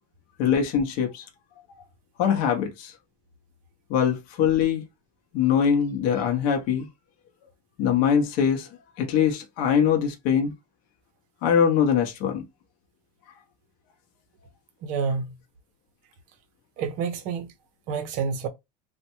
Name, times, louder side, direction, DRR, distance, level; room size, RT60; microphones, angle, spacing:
voice 1, 0.4-1.2 2.2-2.9 3.9-4.8 5.3-6.9 7.8-8.7 9.0-10.5 11.4-12.4, left 8 dB, 45° left, 0.7 m, -22 dB
voice 2, 14.8-15.3 16.8-17.5 17.9-18.5, right 5 dB, 40° right, 0.6 m, -28 dB
3.2 x 2.2 x 2.9 m
cardioid pair, 170°, 20 cm